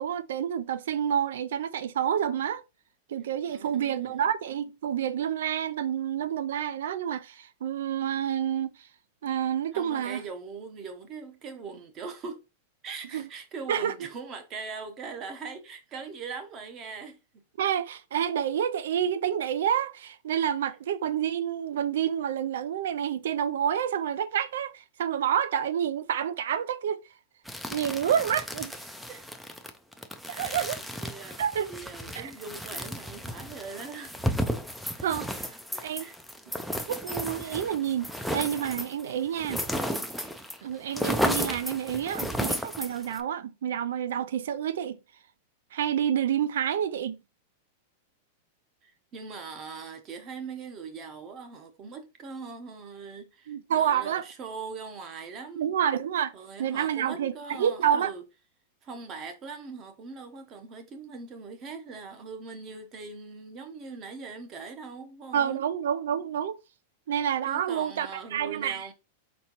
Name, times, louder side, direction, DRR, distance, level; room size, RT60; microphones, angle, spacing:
voice 1, 0.0-2.6 3.1-8.7 9.2-10.2 13.1-13.3 13.7-13.9 17.6-27.0 27.7-28.7 30.3-30.8 31.4-31.7 32.1-32.3 35.0-35.5 35.8-36.1 36.9-39.6 40.6-45.0 45.7-47.2 53.5-54.3 55.6-56.3 56.6-58.1 65.3-66.6 67.1-68.9, right 9 dB, 75° right, 0.5 m, -28 dB
voice 2, 3.5-4.2 9.7-12.4 12.8-17.4 29.1-29.3 30.5-30.6 31.0-31.4 31.7-34.2 34.9-35.0 35.7-36.1 37.4-37.5 48.8-55.8 56.3-58.2 58.8-65.6 67.1-67.2 67.5-68.9, right 5 dB, 25° right, 0.8 m, -41 dB
sound 1, 27.5-40.6 40.8-43.2, equal, ahead, 0.4 m, -33 dB
4.4 x 4.2 x 2.9 m
supercardioid pair, 170°, 0 cm